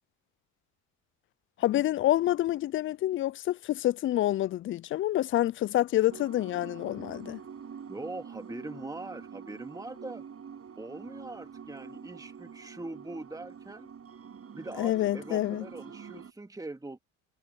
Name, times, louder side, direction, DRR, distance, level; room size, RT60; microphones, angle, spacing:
voice 1, 1.6-7.4 14.8-15.7, left 14 dB, 35° left, 0.4 m, -27 dB
sound 1, 6.1-16.3, right 7 dB, 40° right, 7.6 m, -46 dB
voice 2, 7.9-10.2 10.8-13.9 14.5-17.0, right 2 dB, 10° right, 2.3 m, -42 dB
supercardioid pair, 75°, 37 cm